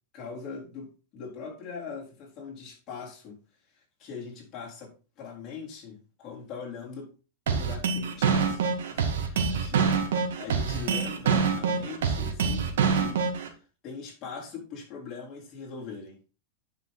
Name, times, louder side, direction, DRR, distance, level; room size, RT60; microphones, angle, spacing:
voice 1, 0.1-3.4 3.7-7.1 7.5-16.2, left 5 dB, 30° left, -3 dB, 3.9 m, -42 dB
sound 1, 7.5-13.5, right 6 dB, 80° right, 2.0 m, -25 dB
9.9 x 5.6 x 4.1 m, 0.34 s
supercardioid pair, 150°, 0 cm